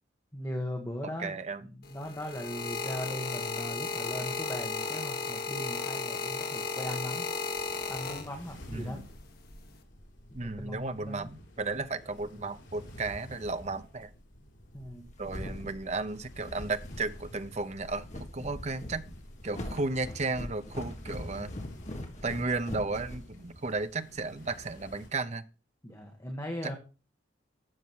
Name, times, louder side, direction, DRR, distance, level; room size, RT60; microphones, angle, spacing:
voice 1, 0.3-7.3 7.9-9.0 10.4-11.3 14.7-15.0 25.8-26.8, left 1 dB, 15° left, 2 dB, 1.5 m, -39 dB
voice 2, 1.0-1.6 8.7-9.1 10.3-14.1 15.2-19.1 19.4-21.5 22.2-25.4 26.6-26.8, right 3 dB, 35° right, 11 dB, 0.7 m, -34 dB
sound 1, 1.8-8.7 9.5-9.8, left 4 dB, 55° left, 1.4 m, -35 dB
sound 2, 7.6-25.1, equal, 75° left, 3.6 m, -50 dB
sound 3, 14.8-23.8, left 1 dB, 40° left, 1.8 m, -42 dB
12.5 x 7.2 x 4.7 m, 0.35 s
head